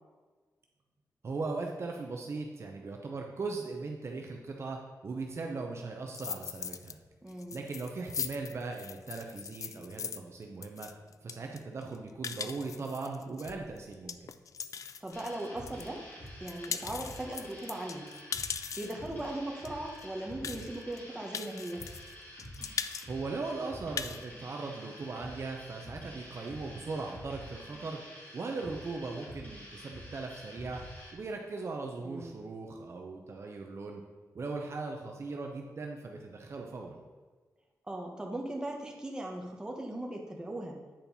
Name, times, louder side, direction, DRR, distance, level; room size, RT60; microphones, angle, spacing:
voice 1, 1.2-7.0 7.5-10.9 11.2-14.3 23.1-28.0 28.3-30.8 31.1-34.0 34.3-37.0, right 3 dB, 45° right, 1 dB, 0.8 m, -39 dB
sound 1, 6.1-6.9 7.3-15.9 16.3-19.1 19.7-19.8 20.0-20.1 20.4-21.0 21.3-22.1 22.4-23.1 23.4-23.5 23.8-24.2, left 6 dB, 60° left, 0.4 m, -40 dB
voice 2, 7.2-7.6 15.0-16.0 16.4-18.1 18.8-21.8 32.0-32.4 37.9-40.8, right 1 dB, 10° right, 0 dB, 1.1 m, -38 dB
sound 2, 15.1-31.1, equal, 30° left, 2.7 m, -48 dB
8.8 x 4.5 x 5.3 m, 1.4 s
wide cardioid pair, 165°, 6 cm